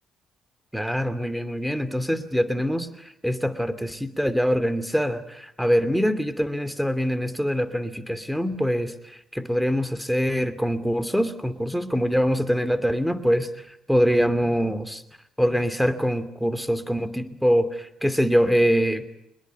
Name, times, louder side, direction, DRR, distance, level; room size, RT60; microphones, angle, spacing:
voice 1, 0.7-2.9 3.2-13.5 13.9-15.0 15.4-19.1, equal, ahead, 12 dB, 2.7 m, -24 dB
23.5 x 21.5 x 9.5 m, 0.80 s
hypercardioid pair, 55°, 0 cm